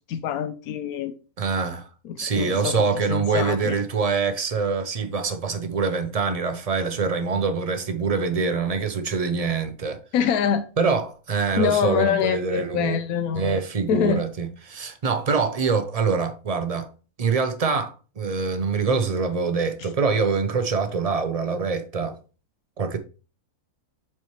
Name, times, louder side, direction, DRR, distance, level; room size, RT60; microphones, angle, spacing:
voice 1, 0.1-1.2 2.0-3.8 10.1-10.6 11.6-13.6 13.9-14.2, left 8 dB, 90° left, 1.1 m, -25 dB
voice 2, 1.4-1.9 2.2-10.0 10.8-13.0 13.3-16.9 17.2-22.2 22.8-23.0, right 5 dB, 55° right, 0.4 m, -24 dB
7.8 x 4.3 x 3.1 m
omnidirectional pair, 1.5 m